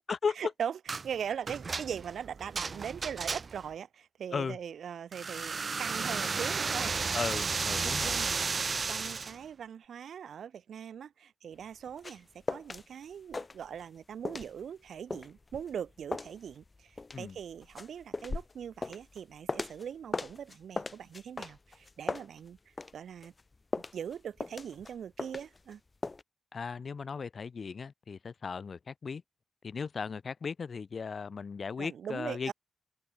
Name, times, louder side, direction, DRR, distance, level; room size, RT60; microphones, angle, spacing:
voice 1, 0.4-7.5 7.8-8.6 8.9-22.6 22.9-23.3 23.9-25.8 31.8-32.5, right 8 dB, 75° right, 3.0 m, -41 dB
sound 1, 0.9-1.1 1.5-3.7 5.1-9.4, right 4 dB, 45° right, 1.2 m, -33 dB
voice 2, 7.1-8.2 17.1-17.4 26.5-29.2 29.6-32.5, left 5 dB, 55° left, 1.4 m, -36 dB
sound 2, 11.6-12.9 13.1-14.0 14.3-19.9 20.1-22.9 23.2-25.7 26.0-26.2, left 3 dB, 30° left, 4.0 m, -38 dB
cardioid pair, 75°, 0 cm